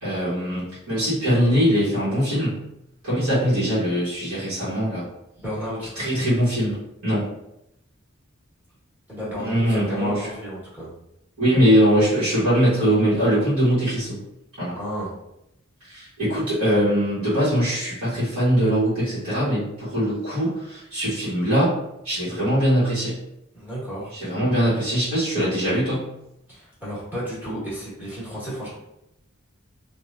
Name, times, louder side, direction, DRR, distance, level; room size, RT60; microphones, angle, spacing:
voice 1, 0.0-2.6 3.0-5.0 6.0-7.3 9.4-10.3 11.4-14.2 14.6-14.7 15.8-21.8 22.0-23.2 24.1-26.1, equal, 85° right, -12 dB, 1.3 m, -22 dB
voice 2, 5.4-6.0 9.1-10.9 14.7-15.1 23.5-24.1 26.5-28.7, equal, 10° right, -9 dB, 1.4 m, -32 dB
3.2 x 2.5 x 2.5 m, 0.85 s
head